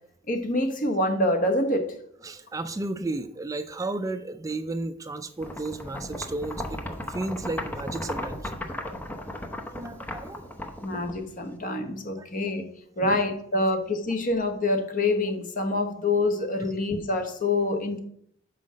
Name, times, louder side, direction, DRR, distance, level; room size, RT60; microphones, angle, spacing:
voice 1, 0.3-1.9 10.8-12.7 13.0-18.0, left 2 dB, 45° left, 6 dB, 1.0 m, -26 dB
voice 2, 2.2-6.8 7.1-8.5 9.7-10.6 12.2-12.3 13.0-13.2, right 2 dB, 15° right, 10 dB, 0.3 m, -33 dB
sound 1, 5.4-11.5, left 1 dB, 10° left, 0.8 m, -36 dB
5.7 x 5.0 x 6.3 m, 0.67 s
head